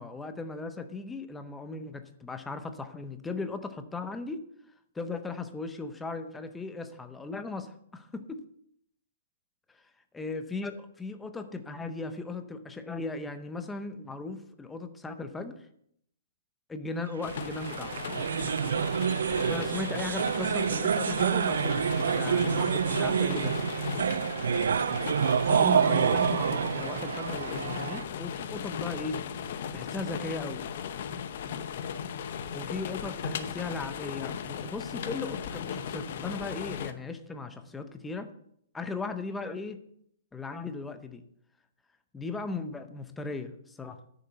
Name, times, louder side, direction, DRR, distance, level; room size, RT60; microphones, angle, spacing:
voice 1, 0.0-4.4 4.9-8.4 10.1-15.7 16.7-18.0 19.4-23.6 25.5-29.2 29.7-30.6 32.5-38.3 38.7-39.8 40.3-41.2 42.1-44.0, left 3 dB, 5° left, 8 dB, 0.6 m, -37 dB
sound 1, 17.2-36.9, left 8 dB, 40° left, 0.8 m, -37 dB
sound 2, 17.3-28.0, right 7 dB, 70° right, 0.3 m, -27 dB
10.0 x 6.6 x 7.8 m, 0.69 s
hypercardioid pair, 175°, 0 cm